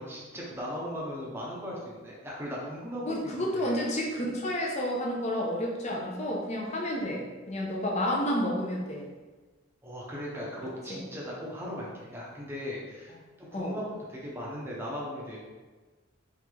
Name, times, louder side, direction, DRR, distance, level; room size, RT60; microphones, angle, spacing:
voice 1, 0.0-3.8 9.8-15.4, equal, 10° right, -5 dB, 0.7 m, -38 dB
voice 2, 3.1-9.1 10.9-11.0 13.5-13.8, equal, 35° left, -2 dB, 0.7 m, -30 dB
3.8 x 3.4 x 3.2 m, 1.3 s
head